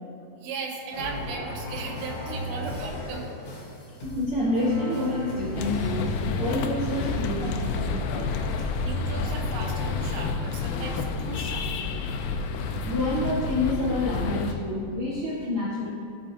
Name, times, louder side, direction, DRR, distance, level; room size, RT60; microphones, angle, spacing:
voice 1, 0.4-3.3 8.8-11.8, right 4 dB, 85° right, -1 dB, 3.5 m, -36 dB
sound 1, 0.9-8.6, left 1 dB, 70° left, 1.5 m, -37 dB
voice 2, 4.0-6.1 6.4-7.6 8.5-8.7 12.8-15.9, left 1 dB, 55° right, -8 dB, 1.5 m, -28 dB
sound 2, 5.6-14.5, left 4 dB, 90° left, 2.1 m, -29 dB
16.5 x 6.2 x 2.8 m, 2.5 s
omnidirectional pair, 5.1 m